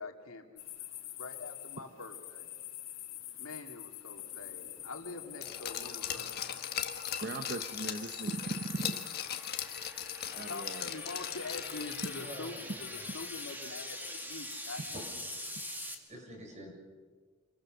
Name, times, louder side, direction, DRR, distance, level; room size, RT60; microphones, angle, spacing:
voice 1, 0.0-2.5 3.4-6.5 10.5-15.0, left 3 dB, 85° left, 3 dB, 2.5 m, -45 dB
sound 1, 0.6-15.9, left 13 dB, 70° left, 3.1 m, -46 dB
sound 2, 4.3-15.9, right 1 dB, 10° right, 2.0 m, -46 dB
Glass, 5.4-12.3 12.7-12.8, left 9 dB, 50° left, 1.5 m, -39 dB
voice 2, 7.2-9.0 10.3-10.9, right 2 dB, 50° right, 8 dB, 0.8 m, -38 dB
voice 3, 12.2-13.3 15.7-15.8 16.1-16.7, equal, 35° right, 1 dB, 6.7 m, -48 dB
27.0 x 21.5 x 6.5 m, 1.5 s
head